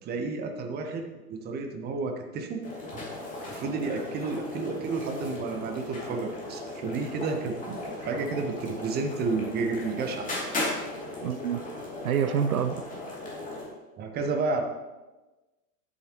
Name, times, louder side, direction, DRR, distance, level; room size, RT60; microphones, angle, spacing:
voice 1, 0.0-2.6 2.9-3.1 3.5-10.3 14.0-14.6, right 4 dB, 20° right, 5 dB, 0.9 m, -31 dB
sound 1, 2.6-13.7, left 2 dB, 15° left, 2.7 m, -37 dB
voice 2, 11.2-11.7 12.0-12.8, right 8 dB, 65° right, 10 dB, 0.6 m, -27 dB
10.5 x 8.0 x 3.0 m, 1.1 s
figure-of-eight pair, 95°, 47 cm